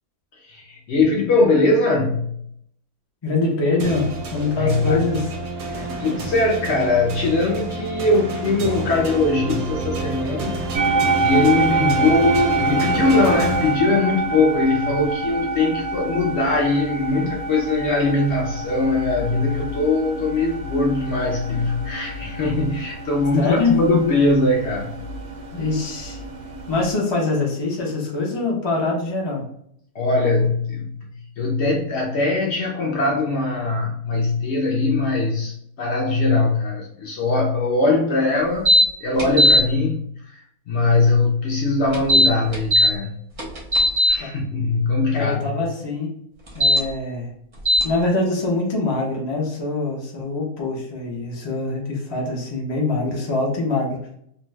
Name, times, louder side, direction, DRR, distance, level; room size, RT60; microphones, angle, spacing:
voice 1, 0.4-2.4 4.5-5.0 6.0-25.0 29.9-31.1 31.4-38.8 39.0-43.1 44.1-45.6, left 3 dB, 65° left, -1 dB, 0.7 m, -21 dB
voice 2, 3.2-5.3 11.6-11.9 23.3-23.8 25.5-26.2 26.7-29.4 44.2-44.4 45.1-46.2 46.5-47.3 47.8-54.0, left 3 dB, 35° left, -2 dB, 0.4 m, -24 dB
sound 1, 3.8-14.4, right 3 dB, 65° right, 0.8 m, -29 dB
sound 2, 10.7-26.9, right 3 dB, 85° right, 1.1 m, -26 dB
sound 3, 38.7-38.8 39.2-39.6 41.9-42.9 43.4-44.1 46.5-46.8 47.7-47.8, equal, 35° right, 0.5 m, -15 dB
2.5 x 2.2 x 3.1 m, 0.70 s
omnidirectional pair, 1.5 m